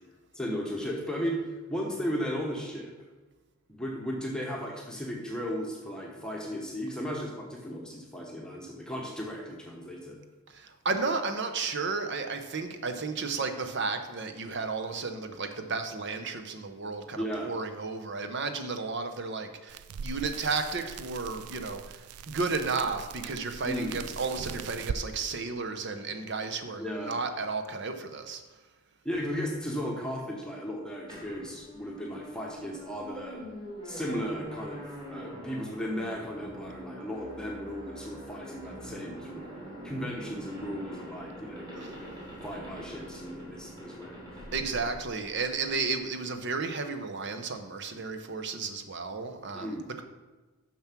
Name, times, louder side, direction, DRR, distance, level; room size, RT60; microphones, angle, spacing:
voice 1, 0.3-2.9 3.7-10.2 17.2-17.5 23.7-24.0 26.8-27.2 29.0-33.4 33.8-39.5 39.8-42.1 42.4-44.2 49.5-49.9, equal, 5° left, -2 dB, 1.0 m, -35 dB
voice 2, 10.5-28.4 44.5-50.0, right 4 dB, 50° right, 7 dB, 0.8 m, -33 dB
sound 1, 19.7-25.0, right 6 dB, 85° right, 0.4 m, -40 dB
sound 2, 31.1-45.8, equal, 20° right, 2.4 m, -44 dB
7.1 x 5.9 x 5.9 m, 1.2 s
head